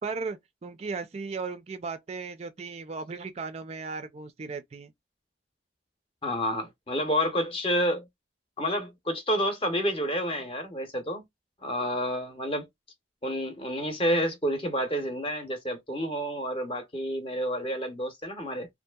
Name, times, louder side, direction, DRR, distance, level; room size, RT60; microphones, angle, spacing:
voice 1, 0.0-4.9, right 4 dB, 35° right, 0.3 m, -36 dB
voice 2, 6.2-8.1 8.6-11.2 11.6-12.7 13.2-18.7, equal, 30° left, 0.7 m, -29 dB
2.7 x 2.4 x 2.2 m
head